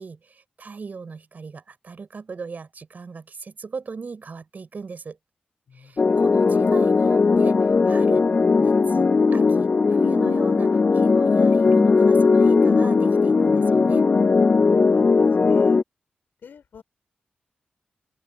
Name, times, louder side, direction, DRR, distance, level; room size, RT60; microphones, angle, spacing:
voice 1, 0.0-5.2 5.7-7.6 7.8-8.3 8.6-14.1, right 5 dB, 60° right, 7.5 m, -38 dB
voice 2, 5.7-6.2 14.6-15.8 16.4-16.8, left 7 dB, 85° left, 7.2 m, -49 dB
sound 1, 6.0-15.8, left 4 dB, 45° left, 0.3 m, -18 dB
cardioid pair, 65°, 3 cm